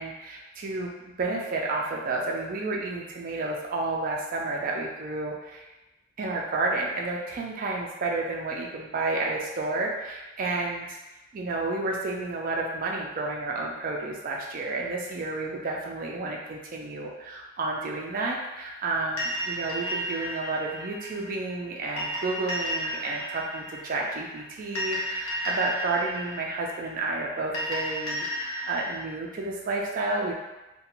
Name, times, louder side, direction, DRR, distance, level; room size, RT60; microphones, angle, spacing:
voice 1, 0.0-5.7 6.2-11.0 11.3-30.3, right 3 dB, 40° right, -1 dB, 0.3 m, -31 dB
sound 1, 19.2-29.0, equal, 70° left, 0.8 m, -33 dB
2.4 x 2.2 x 2.9 m, 1.0 s
head